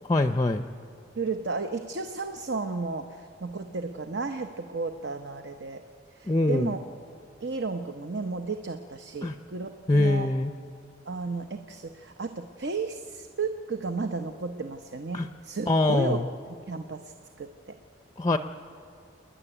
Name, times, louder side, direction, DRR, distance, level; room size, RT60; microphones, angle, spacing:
voice 1, 0.1-0.7 6.2-6.7 9.2-9.4 9.9-10.5 15.1-15.3 15.7-16.3 18.2-18.4, left 2 dB, 20° left, 9 dB, 0.5 m, -23 dB
voice 2, 1.2-5.8 6.2-6.8 7.4-10.3 11.1-16.2 16.7-17.0 17.4-17.8, right 4 dB, 60° right, 7 dB, 0.8 m, -33 dB
27.5 x 10.0 x 10.0 m, 2.3 s
head